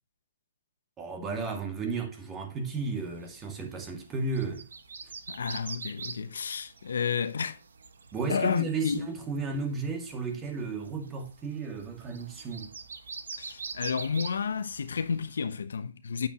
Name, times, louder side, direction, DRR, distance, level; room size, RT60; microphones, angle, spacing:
voice 1, 1.0-4.7 8.1-12.7, right 4 dB, 20° right, 2.3 m, -34 dB
sound 1, 2.9-15.4, right 5 dB, 90° right, 1.3 m, -45 dB
voice 2, 5.3-7.6 8.3-9.1 13.4-16.3, left 6 dB, 85° left, 1.1 m, -31 dB
9.2 x 8.5 x 3.0 m
hypercardioid pair, 145°, 0 cm